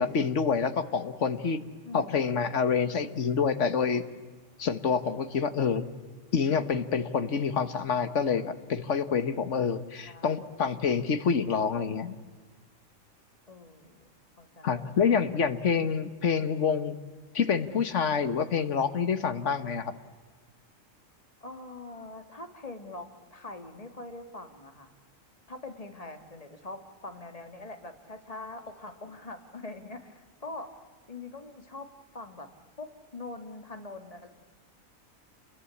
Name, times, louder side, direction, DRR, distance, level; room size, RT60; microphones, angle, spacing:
voice 1, 0.0-1.6 1.9-4.0 4.6-5.8 6.3-12.1 14.6-16.9 17.3-19.9, left 6 dB, 60° left, 11 dB, 1.6 m, -27 dB
voice 2, 1.8-2.2 10.0-10.7 13.5-14.1 14.4-15.3 21.4-24.9 25.5-30.7 31.1-31.9 32.1-32.5 32.8-34.3, left 2 dB, 25° left, 6 dB, 2.1 m, -43 dB
29.0 x 22.0 x 8.5 m, 1.4 s
omnidirectional pair, 1.4 m